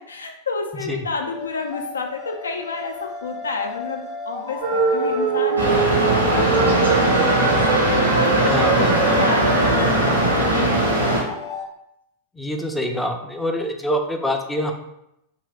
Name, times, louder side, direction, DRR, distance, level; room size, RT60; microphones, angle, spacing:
voice 1, 0.1-8.9 9.2-11.3, left 4 dB, 75° left, 4 dB, 0.4 m, -30 dB
sound 1, 0.6-11.7, left 6 dB, 30° left, 0.9 m, -34 dB
sound 2, 4.6-9.9, right 4 dB, 55° right, 0.4 m, -23 dB
sound 3, 5.6-11.2, right 2 dB, 80° right, 0.8 m, -19 dB
voice 2, 8.4-9.2 12.4-14.7, equal, 5° left, 4 dB, 0.4 m, -25 dB
2.8 x 2.6 x 3.2 m, 0.83 s
figure-of-eight pair, 90°, 0 cm